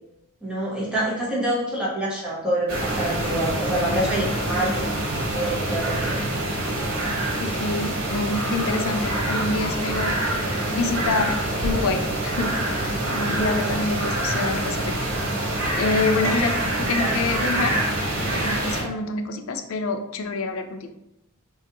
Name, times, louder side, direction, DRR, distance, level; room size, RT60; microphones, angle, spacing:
voice 1, 0.4-5.0 5.3-6.2 13.2-13.3 13.6-13.8 16.2-16.3 17.0-17.1 18.8-18.9, right 1 dB, 5° right, -7 dB, 0.9 m, -26 dB
sound 1, 2.7-18.8, right 1 dB, 85° right, 1.1 m, -25 dB
voice 2, 7.4-10.2 10.7-12.6 13.1-15.0 15.8-17.9 18.2-20.9, left 3 dB, 75° left, 7 dB, 0.4 m, -27 dB
3.9 x 2.5 x 2.8 m, 0.82 s
head